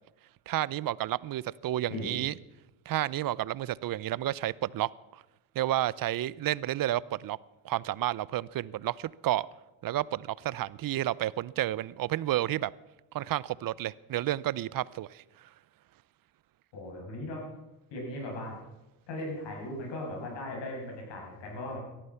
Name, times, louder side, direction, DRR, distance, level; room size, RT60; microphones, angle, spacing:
voice 1, 0.5-2.3 2.9-5.2 5.5-7.4 7.6-9.5 9.8-12.7 13.1-15.5, right 14 dB, 50° right, 0.6 m, -31 dB
voice 2, 16.7-17.4 17.9-18.6 19.1-21.8, left 1 dB, 65° left, 7.9 m, -38 dB
18.0 x 13.5 x 5.7 m
cardioid pair, 95°, 45 cm